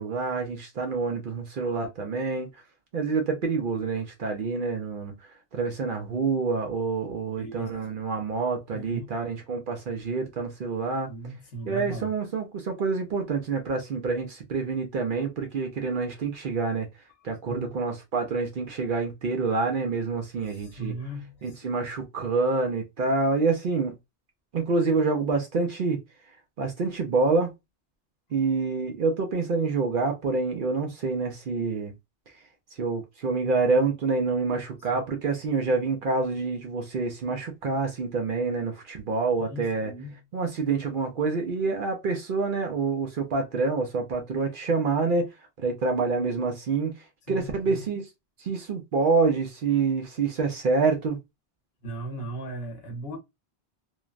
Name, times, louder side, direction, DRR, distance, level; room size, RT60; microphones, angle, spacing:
voice 1, 0.0-2.6 2.9-11.1 11.7-21.0 21.4-24.0 24.5-26.0 26.3-27.5 28.3-31.9 32.3-32.4 32.7-39.9 40.3-48.1 48.4-51.2, right 4 dB, 55° right, 0.7 m, -27 dB
voice 2, 7.4-7.7 8.7-9.2 11.1-12.1 17.5-17.6 20.5-21.8 34.9-35.0 39.5-40.2 47.3-47.8 51.8-53.2, right 2 dB, 65° left, 1.1 m, -37 dB
3.1 x 2.1 x 2.3 m
omnidirectional pair, 1.2 m